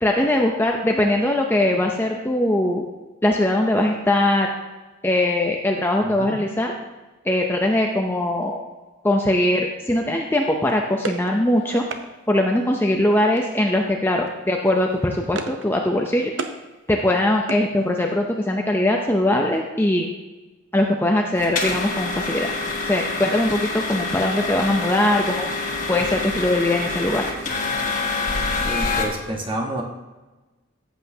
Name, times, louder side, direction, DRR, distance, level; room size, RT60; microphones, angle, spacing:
voice 1, 0.0-2.8 3.2-4.5 5.0-6.7 7.3-8.6 9.0-11.8 12.3-16.3 16.9-20.1 20.7-22.5 22.8-25.5 25.9-27.2, left 1 dB, 10° left, 1 dB, 0.6 m, -21 dB
voice 2, 6.0-6.4 28.6-29.8, right 1 dB, 25° right, 1 dB, 1.3 m, -29 dB
sound 1, 10.7-12.1 13.4-13.8 14.1-14.3 14.6-15.7 16.0-16.6 17.0-18.2, right 3 dB, 60° right, 0.7 m, -35 dB
sound 2, 21.4-29.0, left 3 dB, 40° left, 1.4 m, -26 dB
14.5 x 8.0 x 2.8 m, 1.2 s
head